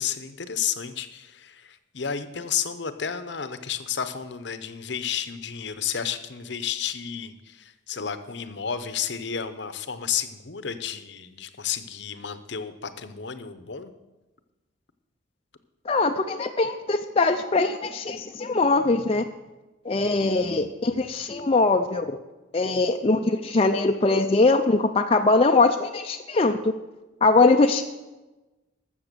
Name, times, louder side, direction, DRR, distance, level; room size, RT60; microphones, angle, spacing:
voice 1, 0.0-13.9, left 8 dB, 60° left, 11 dB, 0.8 m, -32 dB
voice 2, 15.9-19.2 19.9-22.1 22.5-26.7 27.2-27.8, left 3 dB, 30° left, 5 dB, 0.4 m, -21 dB
13.5 x 7.2 x 6.8 m, 1.1 s
head